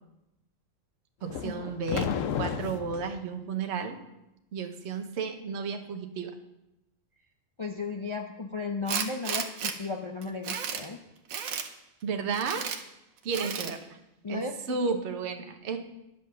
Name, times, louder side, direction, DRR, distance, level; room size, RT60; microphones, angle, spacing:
voice 1, 1.2-4.0 4.5-6.3 12.0-12.7 13.2-13.8 14.3-15.8, right 5 dB, 60° right, 5 dB, 1.1 m, -33 dB
sound 1, 1.3-3.1, left 8 dB, 75° left, 1.0 m, -32 dB
voice 2, 7.6-11.0 14.2-14.9, left 3 dB, 50° left, 3 dB, 0.3 m, -35 dB
Tools, 8.9-9.7 10.2-10.9 11.3-11.7 12.3-12.8 13.3-13.7, right 7 dB, 85° right, 1.3 m, -33 dB
10.5 x 5.5 x 6.5 m, 0.90 s
omnidirectional pair, 1.4 m